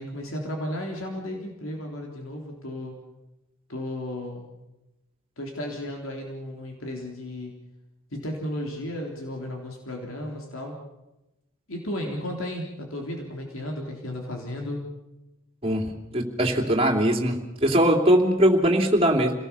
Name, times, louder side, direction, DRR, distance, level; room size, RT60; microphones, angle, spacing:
voice 1, 0.0-2.9 3.7-4.5 5.4-7.6 8.1-10.8 11.7-14.8, left 1 dB, 70° left, 0 dB, 3.6 m, -34 dB
voice 2, 16.1-19.3, right 1 dB, 25° right, 1 dB, 3.1 m, -21 dB
28.5 x 18.5 x 7.1 m, 0.98 s
head